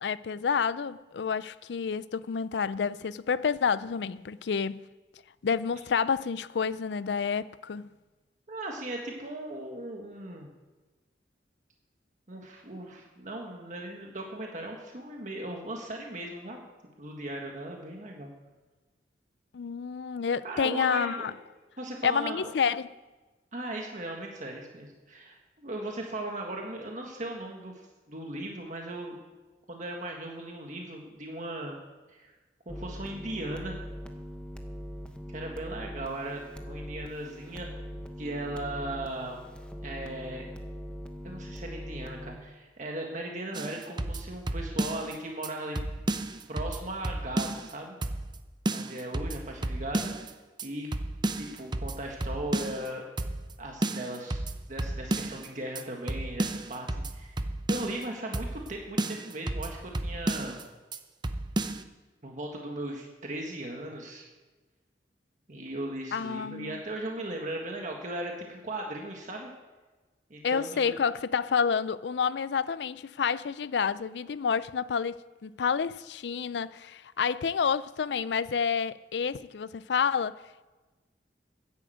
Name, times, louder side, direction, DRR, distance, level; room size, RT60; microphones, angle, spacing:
voice 1, 0.0-4.8 5.4-7.9 19.5-21.3 22.0-22.9 66.1-66.8 70.4-80.4, left 6 dB, 75° left, 0.4 m, -29 dB
voice 2, 8.5-10.5 12.3-16.6 17.0-18.3 20.4-21.3 21.8-22.5 23.5-27.7 28.1-29.2 29.7-31.8 32.1-32.3 32.7-33.8 35.3-37.7 38.2-39.5 39.8-40.5 41.2-45.8 46.5-48.0 48.7-50.1 50.6-50.9 51.4-53.1 53.6-54.4 54.7-57.4 57.7-60.6 62.2-64.3 65.5-69.5 70.3-71.0, right 1 dB, 45° right, 1.6 m, -37 dB
sound 1, 32.7-42.4, equal, 5° left, 1.0 m, -41 dB
sound 2, 43.5-45.1 45.4-45.5 45.8-47.7 48.0-48.4 48.7-50.3 50.6-50.7 50.9-52.9 53.2-53.5 53.8-55.5 55.8-55.9 56.1-58.0 58.3-58.7 59.0-60.6 60.9-61.0 61.2-61.8, right 2 dB, 25° right, 0.6 m, -32 dB
10.5 x 9.8 x 7.9 m
head